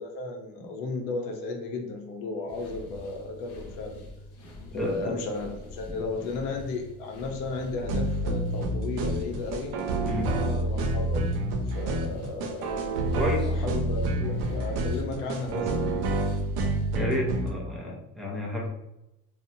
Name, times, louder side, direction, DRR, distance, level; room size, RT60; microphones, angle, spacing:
voice 1, 0.0-4.0 4.7-9.7 10.3-11.3 11.7-12.7 13.4-15.9, left 3 dB, 85° left, 2 dB, 0.8 m, -34 dB
sound 1, 2.5-17.0, left 2 dB, 50° left, 0.7 m, -45 dB
voice 2, 4.7-5.2 5.9-6.0 10.1-10.4 13.1-13.5 15.5-15.7 16.9-18.7, left 1 dB, ahead, -3 dB, 0.4 m, -31 dB
sound 2, 7.8-17.5, right 2 dB, 90° right, 0.6 m, -28 dB
2.8 x 2.0 x 2.6 m, 0.92 s
cardioid pair, 165°, 32 cm